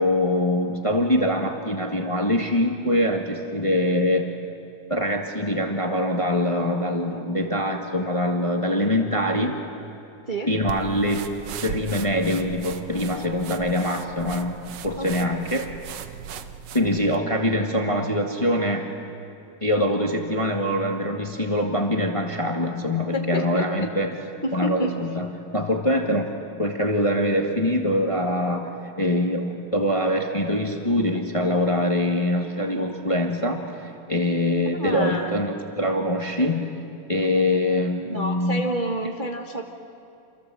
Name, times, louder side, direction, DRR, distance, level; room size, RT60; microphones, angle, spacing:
voice 1, 0.0-4.3 4.9-9.6 10.5-11.3 11.6-14.6 14.8-15.7 16.7-18.9 19.6-24.1 24.5-25.3 25.5-26.3 26.6-28.7 29.0-33.7 34.1-36.7 37.1-38.6, left 1 dB, 15° left, 2 dB, 1.3 m, -23 dB
sound 1, 10.7-17.2, right 8 dB, 65° right, 1.9 m, -38 dB
voice 2, 15.0-15.4 23.1-23.9 24.4-24.9 34.7-35.3 38.0-39.6, right 1 dB, 30° right, 0 dB, 0.9 m, -29 dB
28.0 x 27.5 x 7.7 m, 2.8 s
omnidirectional pair, 3.4 m